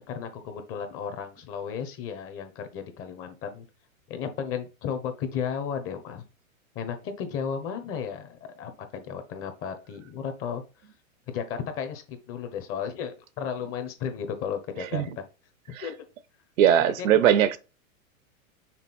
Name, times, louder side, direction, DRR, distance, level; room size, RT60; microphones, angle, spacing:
voice 1, 0.1-3.6 4.1-6.2 6.7-10.6 11.3-15.2 15.7-15.9 16.8-17.1, left 7 dB, 30° left, 1.2 m, -34 dB
voice 2, 16.6-17.6, right 10 dB, 70° right, 0.8 m, -20 dB
6.0 x 3.9 x 4.2 m
hypercardioid pair, 140°, 42 cm